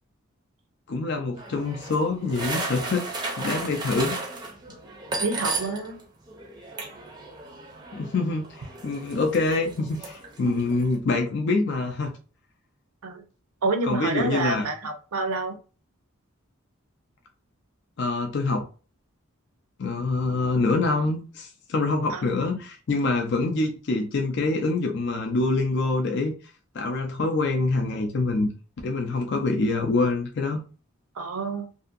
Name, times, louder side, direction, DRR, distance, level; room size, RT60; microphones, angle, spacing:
voice 1, 0.9-3.1 3.4-4.2 7.9-12.1 13.8-14.7 18.0-18.6 19.8-26.3 26.7-28.5 28.8-30.6, left 3 dB, 50° left, 3 dB, 0.4 m, -25 dB
sound 1, 1.4-6.0 6.3-11.0, right 3 dB, 20° right, 0.5 m, -35 dB
voice 2, 5.2-6.0 10.4-10.6 13.0-13.3 13.6-15.6 22.1-22.3 31.1-31.7, right 3 dB, 90° right, 6 dB, 0.6 m, -28 dB
2.7 x 2.5 x 2.5 m, 0.36 s
head